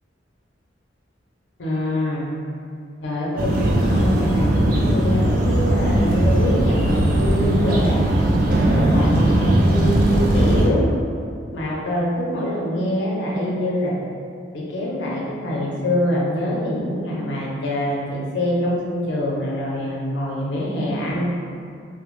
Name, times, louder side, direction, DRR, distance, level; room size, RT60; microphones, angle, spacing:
voice 1, 1.6-2.3 3.0-8.0 8.5-10.9 11.5-13.9 14.5-21.3, left 1 dB, 75° left, -4 dB, 0.5 m, -24 dB
sound 1, 3.4-10.7, right 1 dB, 50° right, 0.3 m, -18 dB
2.2 x 2.0 x 3.0 m, 2.3 s
head